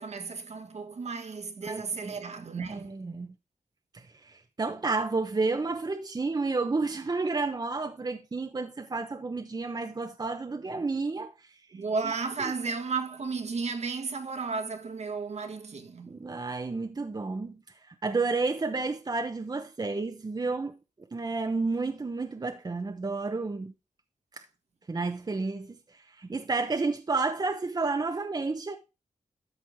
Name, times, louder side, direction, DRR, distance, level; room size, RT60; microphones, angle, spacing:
voice 1, 0.0-2.9 11.7-16.2, right 4 dB, 60° right, 1.5 m, -34 dB
voice 2, 1.6-2.1 2.7-3.3 3.9-11.6 12.0-12.1 16.1-17.6 17.9-20.8 21.1-23.7 24.9-28.8, right 3 dB, 30° right, 0.9 m, -31 dB
13.0 x 4.8 x 3.6 m
cardioid pair, 80°, 13 cm